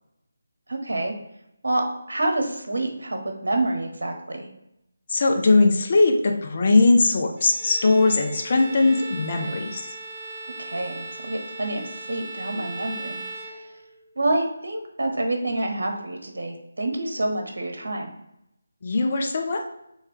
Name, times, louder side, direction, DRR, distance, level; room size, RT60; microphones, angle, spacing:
voice 1, 0.7-1.1 1.6-4.5 10.6-13.7 14.2-18.1, right 2 dB, 75° right, 4 dB, 1.0 m, -28 dB
voice 2, 5.1-9.9 18.8-19.7, left 3 dB, 45° left, 3 dB, 0.7 m, -20 dB
Bowed string instrument, 7.4-14.1, right 2 dB, 30° right, 0.6 m, -38 dB
3.3 x 3.2 x 4.6 m, 0.82 s
figure-of-eight pair, 160°, 0 cm